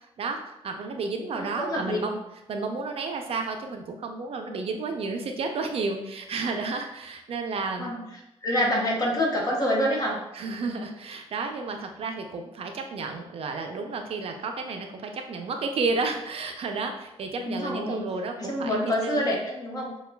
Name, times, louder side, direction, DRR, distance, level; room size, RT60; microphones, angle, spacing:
voice 1, 0.2-2.2 2.5-7.9 8.6-8.8 10.3-19.2, right 4 dB, 60° right, 4 dB, 0.5 m, -32 dB
voice 2, 1.4-2.0 7.8-8.0 8.4-10.2 17.4-18.0 18.4-19.9, equal, 35° left, -2 dB, 1.0 m, -26 dB
6.6 x 2.3 x 2.2 m, 0.89 s
cardioid pair, 105°, 11 cm